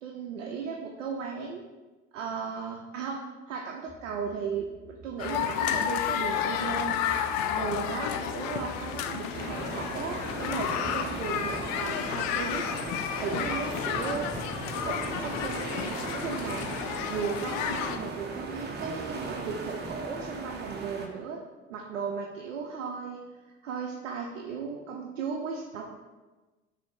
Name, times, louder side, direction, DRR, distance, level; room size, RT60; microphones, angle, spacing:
voice 1, 0.0-1.6 2.1-3.2 3.5-7.0 7.5-12.6 13.2-14.5 14.8-16.7 17.1-21.4 21.7-25.8, right 6 dB, 80° right, 0 dB, 0.5 m, -36 dB
sound 1, 3.9-11.9, right 1 dB, ahead, 0.9 m, -51 dB
sound 2, 5.2-18.0, left 9 dB, 50° left, 0.4 m, -31 dB
sound 3, 9.3-21.1, right 3 dB, 30° right, 0.6 m, -38 dB
6.0 x 2.0 x 3.3 m, 1.2 s
figure-of-eight pair, 60°, 37 cm